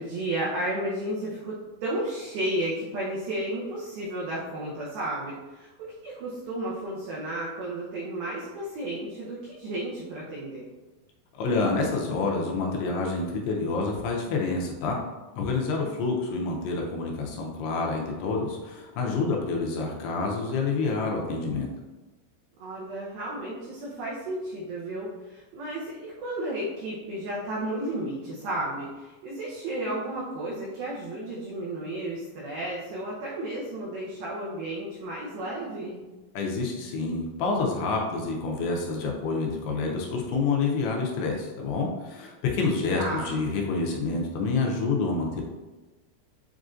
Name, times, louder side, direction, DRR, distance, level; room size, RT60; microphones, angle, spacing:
voice 1, 0.0-10.7 15.8-15.9 22.6-36.0 42.9-43.4, right 1 dB, 80° right, -6 dB, 2.2 m, -33 dB
voice 2, 11.4-15.0 15.4-21.7 36.4-45.4, left 3 dB, 80° left, 0 dB, 2.5 m, -28 dB
7.4 x 2.5 x 2.4 m, 1.1 s
omnidirectional pair, 4.9 m